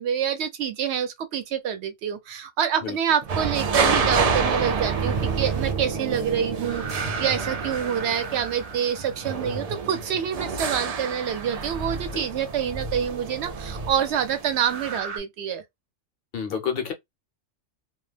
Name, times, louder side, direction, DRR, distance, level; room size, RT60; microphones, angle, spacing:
voice 1, 0.0-15.6, right 8 dB, 65° right, 0.8 m, -27 dB
sound 1, 3.2-9.3 11.2-15.2, right 5 dB, 40° right, 0.6 m, -32 dB
sound 2, 3.3-15.0, right 4 dB, 85° right, 0.3 m, -30 dB
voice 2, 16.3-16.9, left 7 dB, 55° left, 0.8 m, -29 dB
2.4 x 2.0 x 3.1 m
omnidirectional pair, 1.3 m